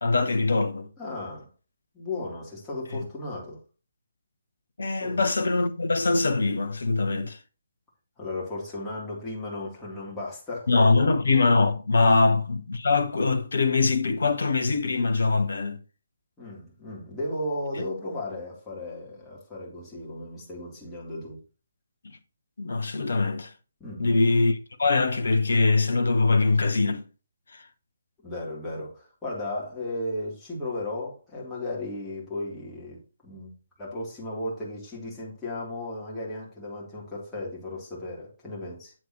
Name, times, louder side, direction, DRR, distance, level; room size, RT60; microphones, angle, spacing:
voice 1, 0.0-0.9 4.8-7.4 10.7-15.8 22.6-23.5 24.0-27.0 27.5-27.6, left 3 dB, 60° left, 0.9 m, -23 dB
voice 2, 1.0-1.5 1.9-3.6 5.0-5.2 8.2-11.1 12.0-12.2 16.4-21.4 23.8-24.2 28.2-33.5 33.8-38.9, left 1 dB, 10° left, 3.3 m, -35 dB
8.7 x 7.6 x 3.1 m
figure-of-eight pair, 140°, 0 cm